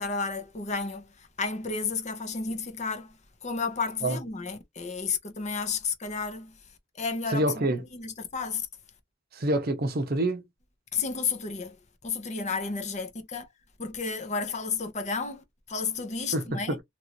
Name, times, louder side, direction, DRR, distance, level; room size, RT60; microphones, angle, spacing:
voice 1, 0.0-6.7 6.9-8.7 10.9-13.5 13.8-16.8, left 4 dB, 35° left, 0.7 m, -32 dB
voice 2, 7.3-7.8 9.3-10.4 16.3-16.8, right 1 dB, 50° right, 0.7 m, -27 dB
3.0 x 2.5 x 2.9 m
head